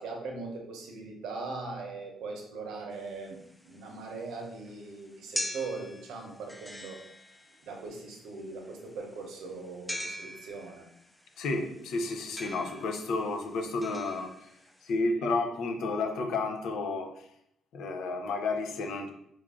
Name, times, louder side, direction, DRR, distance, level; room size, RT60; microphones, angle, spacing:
voice 1, 0.0-7.0 7.6-10.9, right 3 dB, 85° right, 2 dB, 0.7 m, -40 dB
sound 1, 3.0-14.9, left 1 dB, 5° left, 0.4 m, -42 dB
voice 2, 11.4-14.5 14.8-17.3 17.7-19.1, left 3 dB, 80° left, 4 dB, 0.5 m, -31 dB
3.2 x 2.4 x 3.6 m, 0.73 s
cardioid pair, 90°, 0 cm